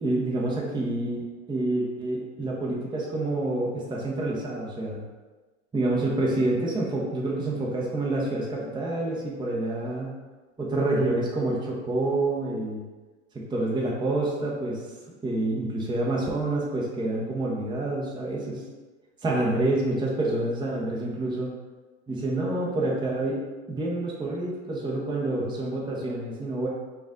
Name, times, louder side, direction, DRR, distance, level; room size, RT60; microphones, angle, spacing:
voice 1, 0.0-1.2 1.5-5.0 5.7-10.1 10.6-12.8 13.3-14.8 15.2-18.6 19.2-21.5 22.1-23.4 23.7-26.7, right 2 dB, 10° right, -4 dB, 0.8 m, -27 dB
4.9 x 2.5 x 3.7 m, 1.3 s
hypercardioid pair, 95°, 38 cm